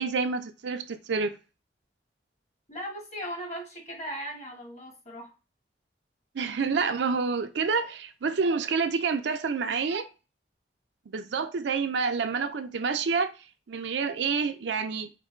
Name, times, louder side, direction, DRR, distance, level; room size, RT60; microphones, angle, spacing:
voice 1, 0.0-1.4 6.3-10.1 11.1-13.3 13.7-15.1, right 5 dB, 70° right, 0.5 m, -28 dB
voice 2, 2.7-5.3, equal, 40° left, 1.4 m, -38 dB
3.3 x 2.2 x 4.3 m
head